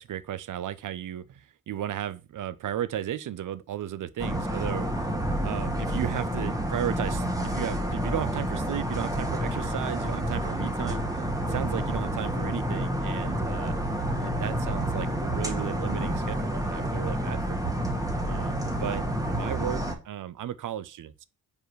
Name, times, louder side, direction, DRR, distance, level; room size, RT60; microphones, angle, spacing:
voice 1, 0.0-4.9 5.4-13.8 14.2-17.7 18.2-21.2, right 10 dB, 55° right, 0.7 m, -35 dB
sound 1, 4.2-19.9, right 1 dB, 10° right, 1.7 m, -29 dB
5.0 x 4.6 x 4.7 m
supercardioid pair, 55°, 37 cm